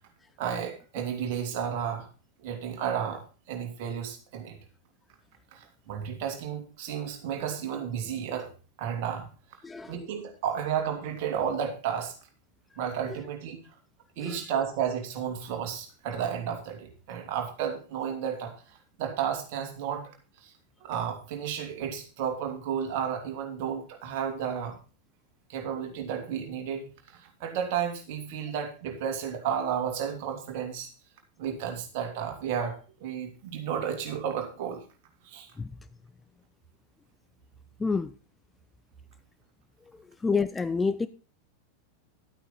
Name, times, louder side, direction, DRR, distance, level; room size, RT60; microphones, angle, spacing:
voice 1, 0.4-2.1 2.4-4.6 5.5-8.5 8.8-9.3 9.9-12.1 12.8-13.6 14.2-20.1 20.4-20.5 20.8-24.8 25.5-30.9 31.4-34.8 35.2-35.5, right 8 dB, 45° right, 2.9 m, -32 dB
voice 2, 37.8-38.1 40.2-41.1, left 4 dB, 10° left, 0.5 m, -27 dB
11.5 x 8.9 x 4.1 m
figure-of-eight pair, 90°, 0 cm